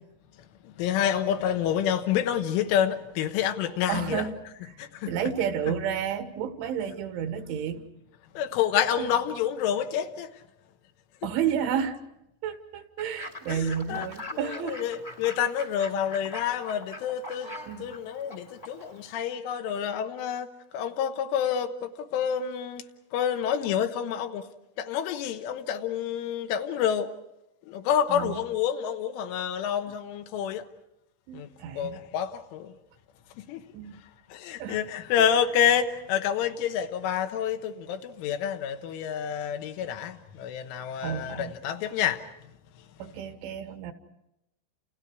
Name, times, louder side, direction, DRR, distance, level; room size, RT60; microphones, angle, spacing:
voice 1, 0.6-4.2 4.8-5.1 8.3-10.3 13.5-20.5 20.7-22.8 23.1-24.5 24.8-27.1 27.7-30.6 31.3-31.5 31.8-32.7 33.4-33.7 34.3-42.2, left 9 dB, 80° left, 3.5 m, -28 dB
voice 2, 3.9-4.4 4.7-7.9 9.0-9.1 11.2-12.0 12.4-14.8 17.7-18.0 28.1-28.4 31.3-32.0 33.7-34.0 34.6-34.8 35.2-35.3 41.0-41.5 43.0-43.9, right 8 dB, 75° right, 3.6 m, -31 dB
Fowl / Bird, 13.0-19.2, left 2 dB, 25° left, 1.4 m, -43 dB
30.0 x 29.5 x 4.7 m
omnidirectional pair, 5.8 m